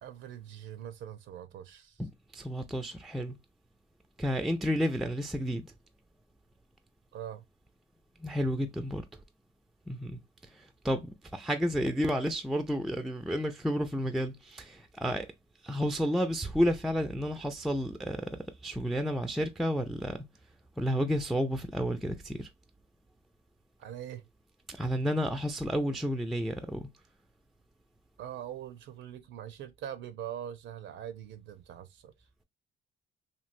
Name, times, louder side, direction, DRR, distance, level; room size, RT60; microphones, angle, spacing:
voice 1, 0.0-2.0 7.1-7.4 23.8-24.2 28.2-32.1, right 10 dB, 70° right, 0.5 m, -42 dB
voice 2, 2.0-3.3 4.2-5.7 8.2-9.0 9.9-10.2 10.5-15.3 15.6-18.3 18.6-20.2 20.8-22.5 24.7-26.9, equal, ahead, 0.3 m, -31 dB
3.0 x 2.6 x 2.4 m
cardioid pair, 90°, 20 cm